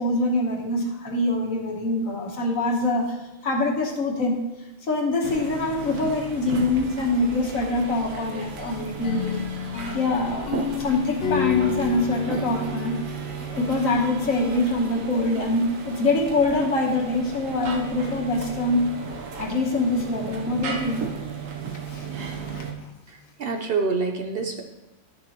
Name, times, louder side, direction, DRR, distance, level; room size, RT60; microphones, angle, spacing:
voice 1, 0.0-3.2 3.4-4.4 4.8-9.4 9.9-13.0 13.6-18.9 19.4-21.1 21.9-22.9, left 2 dB, 75° left, 1 dB, 1.7 m, -24 dB
sound 1, 5.2-22.7, right 5 dB, 70° right, 1.3 m, -35 dB
sound 2, 9.0-13.9, left 7 dB, 60° left, 0.7 m, -30 dB
voice 2, 23.1-24.6, right 4 dB, 50° right, 4 dB, 0.8 m, -27 dB
11.0 x 6.4 x 3.0 m, 0.98 s
omnidirectional pair, 1.4 m